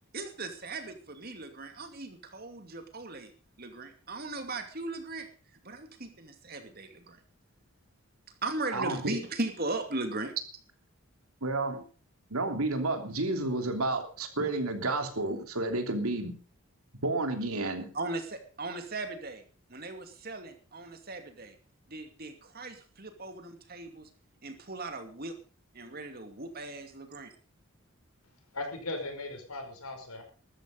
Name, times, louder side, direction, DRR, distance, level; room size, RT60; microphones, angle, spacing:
voice 1, 0.1-3.3 3.6-5.3 5.6-7.2 8.4-10.3 17.9-19.4 19.7-21.5 21.9-24.1 24.4-25.3 25.7-27.3, right 2 dB, 45° right, 7 dB, 2.6 m, -38 dB
voice 2, 8.7-9.1 11.4-11.8 12.3-16.3 17.0-17.9, right 2 dB, 80° right, 6 dB, 3.2 m, -31 dB
voice 3, 28.5-30.2, left 2 dB, 85° left, 5 dB, 5.4 m, -38 dB
14.0 x 13.5 x 5.3 m, 0.38 s
head